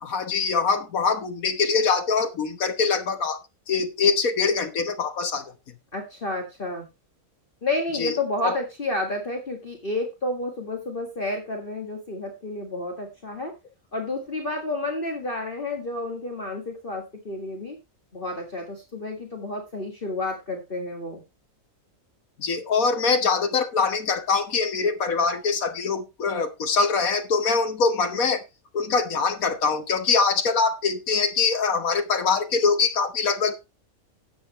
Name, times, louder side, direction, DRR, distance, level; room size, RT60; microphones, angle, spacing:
voice 1, 0.0-3.4 3.7-5.4 8.0-8.1 8.4-8.5 22.4-28.4 28.7-33.6, left 5 dB, 85° left, 7 dB, 1.7 m, -23 dB
voice 2, 5.9-6.9 7.6-13.5 13.9-17.8 18.1-21.2, left 2 dB, 40° left, 2 dB, 2.0 m, -30 dB
12.5 x 8.6 x 3.1 m, 0.24 s
omnidirectional pair, 1.4 m